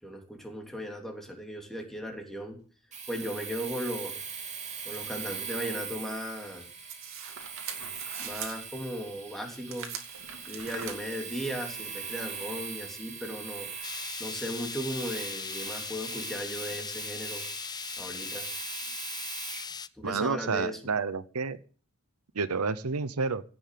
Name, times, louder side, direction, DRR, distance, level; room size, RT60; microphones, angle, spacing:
voice 1, 0.0-2.6 3.1-4.2 4.8-6.7 8.2-9.9 10.4-17.4 18.0-18.5 20.0-20.8, equal, ahead, 2 dB, 3.2 m, -37 dB
Domestic sounds home sounds, 2.9-19.7, right 6 dB, 30° right, 2.8 m, -41 dB
sound 1, 6.9-8.6 9.7-10.9, right 7 dB, 65° right, 2.6 m, -41 dB
sound 2, 13.8-19.9, left 6 dB, 20° left, 0.6 m, -39 dB
voice 2, 20.0-21.6 22.3-23.4, right 4 dB, 90° right, 15 dB, 0.8 m, -30 dB
16.5 x 7.2 x 7.6 m, 0.42 s
head